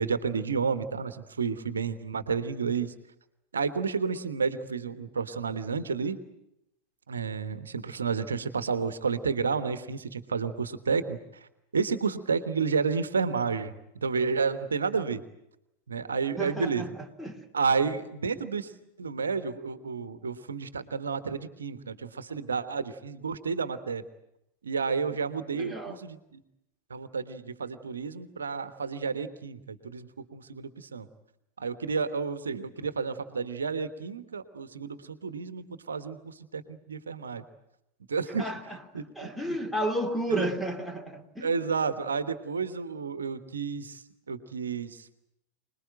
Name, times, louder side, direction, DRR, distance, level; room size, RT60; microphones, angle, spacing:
voice 1, 0.0-2.9 3.5-6.2 7.1-11.5 11.7-13.7 14.0-15.2 15.9-16.9 17.5-18.7 19.0-24.0 24.6-26.4 26.9-31.1 31.6-37.4 38.1-38.5 38.9-39.6 40.3-40.5 41.4-45.1, right 5 dB, 70° right, 1.3 m, -31 dB
voice 2, 16.4-17.4 25.5-26.0 38.4-41.5, right 1 dB, ahead, 2.6 m, -32 dB
26.0 x 20.5 x 9.1 m
figure-of-eight pair, 90°, 0 cm